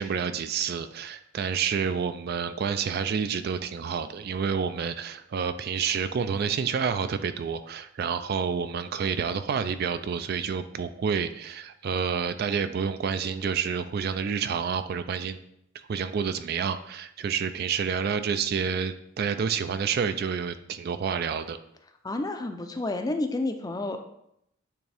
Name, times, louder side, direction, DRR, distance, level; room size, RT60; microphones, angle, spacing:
voice 1, 0.0-15.4 15.9-21.6, right 6 dB, 50° right, 11 dB, 0.3 m, -29 dB
voice 2, 22.0-24.0, left 2 dB, 20° left, 6 dB, 0.4 m, -30 dB
8.7 x 3.5 x 3.4 m, 0.76 s
head